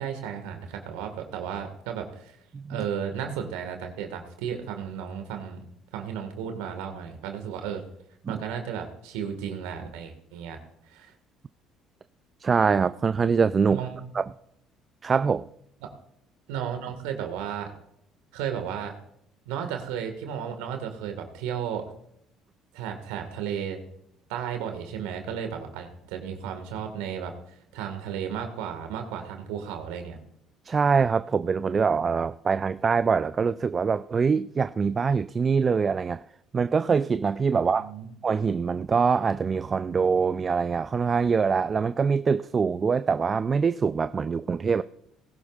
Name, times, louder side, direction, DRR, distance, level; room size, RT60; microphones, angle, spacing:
voice 1, 0.0-2.4 2.7-5.6 5.9-7.8 8.3-10.6 10.9-11.1 13.7-14.0 15.8-15.9 16.5-17.7 18.3-18.9 19.5-21.9 22.7-23.8 24.3-27.3 27.7-30.2 37.8-38.1, right 8 dB, 75° right, 1.7 m, -34 dB
voice 2, 12.4-13.8 14.1-14.3 15.0-15.5 30.6-36.2 36.5-37.9 38.2-44.8, right 5 dB, 35° right, 0.4 m, -24 dB
19.5 x 11.5 x 2.5 m
hypercardioid pair, 60°, 0 cm